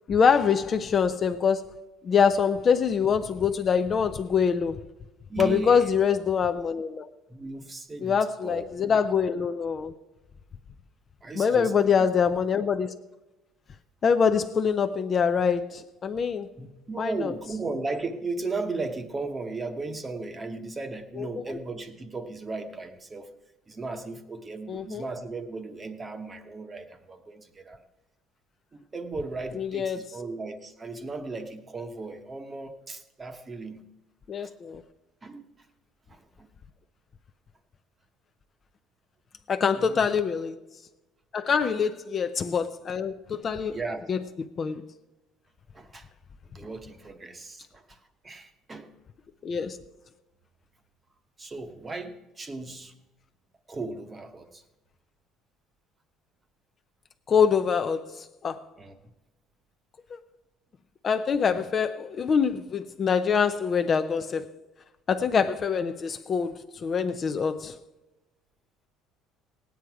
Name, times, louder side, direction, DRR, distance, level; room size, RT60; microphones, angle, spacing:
voice 1, 0.1-1.7 2.0-4.8 5.4-7.1 8.0-9.9 11.3-12.9 14.0-16.5 17.0-17.3 21.2-21.3 24.7-25.1 29.5-30.0 34.3-34.8 39.5-40.6 41.3-43.8 44.1-44.2 44.6-44.9 49.4-49.8 57.3-58.6 60.1-60.2 61.0-64.6 65.1-67.8, left 6 dB, 30° left, 0.5 m, -25 dB
voice 2, 5.3-5.9 7.3-8.6 11.2-11.9 16.6-23.3 23.7-27.8 28.7-33.8 34.4-34.5 35.2-35.4 36.1-36.5 39.7-40.1 41.6-41.7 43.7-44.1 45.7-46.1 46.5-48.9 51.4-52.9 53.7-54.6 58.8-58.9, right 3 dB, 20° right, 0.9 m, -36 dB
18.0 x 9.3 x 4.7 m
cardioid pair, 155°, 0 cm